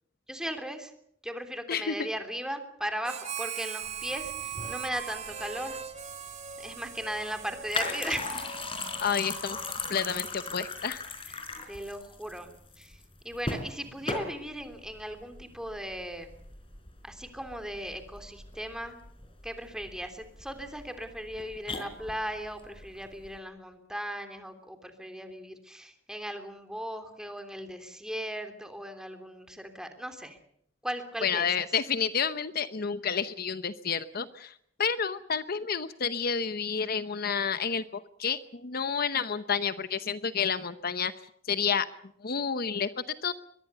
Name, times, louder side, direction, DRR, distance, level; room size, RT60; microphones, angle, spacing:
voice 1, 0.3-0.9 1.2-5.8 6.6-8.3 11.3-11.4 11.7-13.0 13.2-16.3 17.0-19.0 19.4-30.4 30.8-31.5, equal, 5° right, 6 dB, 3.2 m, -37 dB
voice 2, 1.7-2.1 9.0-9.6 9.9-11.0 31.2-41.1 41.5-41.9 42.2-42.9 43.2-43.3, left 6 dB, 55° left, 12 dB, 0.9 m, -30 dB
Harmonica, 3.0-10.8, right 8 dB, 35° right, 2.5 m, -40 dB
sound 1, 3.8-23.4, left 3 dB, 30° left, 4.2 m, -39 dB
23.0 x 22.0 x 6.8 m, 0.68 s
head